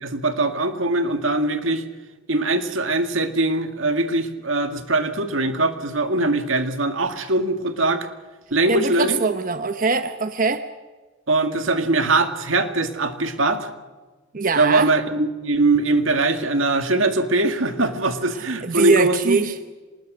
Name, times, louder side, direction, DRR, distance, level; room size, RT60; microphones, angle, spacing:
voice 1, 0.0-1.8 2.3-8.1 8.5-9.2 11.3-13.7 14.6-19.4, right 2 dB, 90° right, 7 dB, 2.1 m, -21 dB
voice 2, 8.7-10.7 14.3-14.9 18.3-19.6, right 4 dB, 45° right, 10 dB, 0.9 m, -22 dB
26.5 x 20.0 x 6.3 m, 1.3 s
head